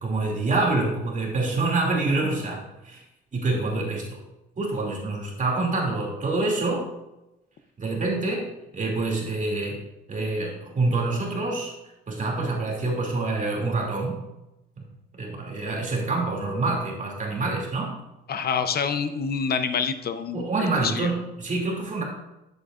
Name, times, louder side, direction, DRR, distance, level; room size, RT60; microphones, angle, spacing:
voice 1, 0.0-3.0 3.3-4.2 4.6-6.9 7.8-8.5 8.7-9.8 10.1-11.7 12.1-14.2 14.8-14.9 15.1-18.0 20.3-22.0, right 3 dB, 40° right, -1 dB, 2.6 m, -26 dB
voice 2, 18.3-20.4 20.8-21.1, left 6 dB, 50° left, 10 dB, 0.7 m, -26 dB
10.5 x 7.9 x 2.5 m, 0.94 s
cardioid pair, 90°, 20 cm